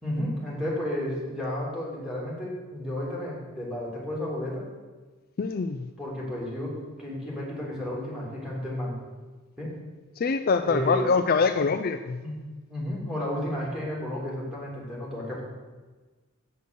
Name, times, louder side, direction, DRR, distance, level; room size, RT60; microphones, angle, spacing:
voice 1, 0.0-4.6 6.0-8.9 9.6-9.7 10.6-11.1 12.2-12.4 12.7-15.4, left 1 dB, ahead, -5 dB, 3.0 m, -32 dB
voice 2, 5.4-5.9 10.2-12.2, left 4 dB, 45° left, 8 dB, 0.4 m, -24 dB
7.9 x 6.6 x 6.9 m, 1.3 s
head